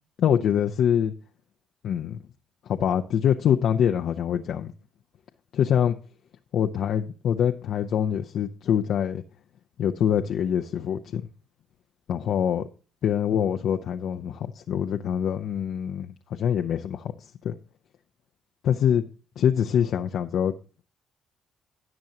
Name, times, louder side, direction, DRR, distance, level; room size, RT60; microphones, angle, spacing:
voice 1, 0.2-1.1 1.8-2.2 2.7-4.7 5.5-6.0 6.5-9.2 9.8-11.3 12.1-12.7 13.0-17.5 18.6-19.0 19.4-20.5, left 9 dB, 70° left, 0.7 m, -24 dB
17.0 x 6.2 x 2.8 m
supercardioid pair, 65°, 0 cm